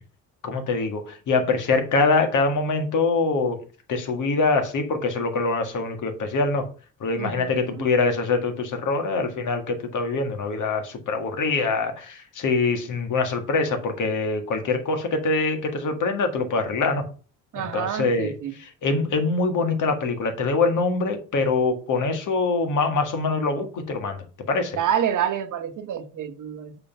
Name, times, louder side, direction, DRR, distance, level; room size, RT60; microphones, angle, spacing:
voice 1, 0.4-3.6 3.9-6.7 7.0-17.0 17.7-18.3 18.6-24.2 24.5-24.8, left 3 dB, 60° left, 1.8 m, -24 dB
voice 2, 7.2-7.8 17.5-18.5 24.8-26.8, right 9 dB, 60° right, 1.2 m, -28 dB
6.6 x 3.7 x 5.7 m
supercardioid pair, 75°, 34 cm